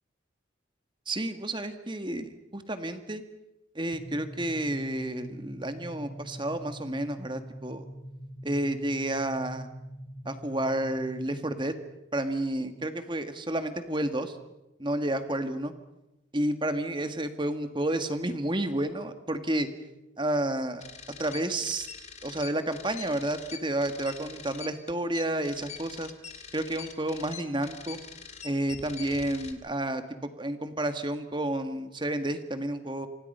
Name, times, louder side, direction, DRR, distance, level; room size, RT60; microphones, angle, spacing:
voice 1, 1.1-3.2 3.8-7.8 8.4-9.7 10.3-11.7 12.1-14.4 14.8-15.7 16.3-19.7 20.2-20.8 21.2-21.9 22.2-26.1 26.5-28.0 28.4-30.0 30.4-33.1, right 1 dB, 25° right, 8 dB, 1.7 m, -30 dB
sound 1, 3.9-11.5, equal, 15° left, 6.1 m, -44 dB
sound 2, 20.8-29.5, left 6 dB, 35° left, 2.1 m, -44 dB
28.0 x 26.0 x 5.6 m, 0.94 s
head